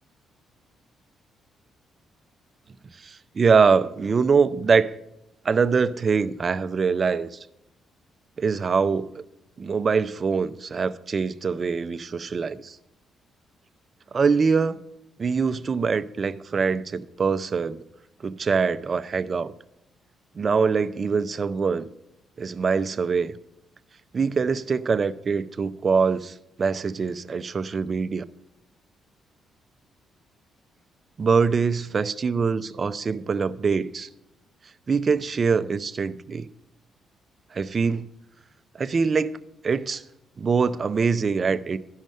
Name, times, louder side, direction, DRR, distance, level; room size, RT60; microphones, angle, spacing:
voice 1, 3.0-4.9 5.4-7.5 8.4-9.2 9.6-12.8 14.1-14.8 15.2-17.8 18.2-19.5 20.4-21.9 22.4-23.3 24.1-28.2 31.2-34.1 34.9-36.5 37.5-38.1 38.7-39.3 39.6-40.0 40.4-41.8, right 5 dB, 40° right, 0.5 m, -23 dB
10.5 x 6.5 x 6.4 m
cardioid pair, 90°, 0 cm